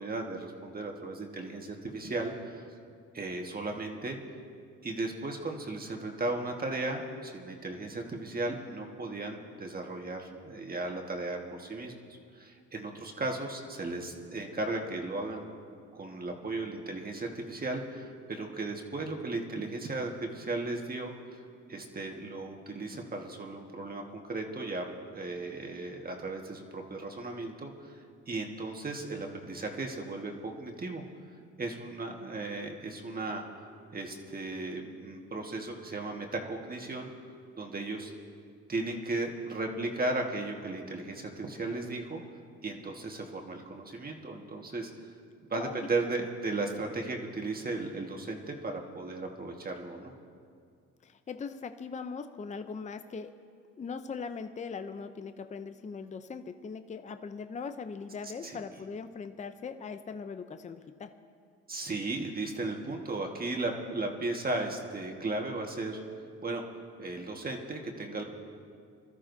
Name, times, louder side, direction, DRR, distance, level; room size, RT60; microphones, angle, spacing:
voice 1, 0.0-2.6 3.1-4.2 4.8-11.9 12.3-15.4 15.9-21.4 21.7-24.8 25.1-31.0 31.6-33.4 33.9-37.1 37.6-38.1 38.7-42.2 42.6-44.9 45.5-50.1 58.4-58.6 61.7-66.0 66.4-66.6 67.0-68.2, right 2 dB, 30° right, 2 dB, 1.6 m, -36 dB
voice 2, 51.0-53.3 53.8-61.1, left 5 dB, 25° left, 9 dB, 0.5 m, -40 dB
25.0 x 13.0 x 2.7 m, 2.3 s
cardioid pair, 90°, 30 cm